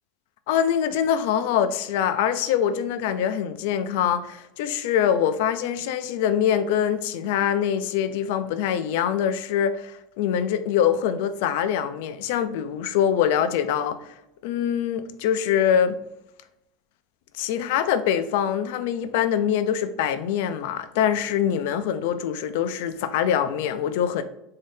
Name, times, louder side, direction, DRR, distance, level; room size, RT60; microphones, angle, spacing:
voice 1, 0.5-14.0 14.4-16.0 17.4-24.2, left 9 dB, 70° left, 0.4 m, -24 dB
3.6 x 2.7 x 3.4 m
supercardioid pair, 140°, 0 cm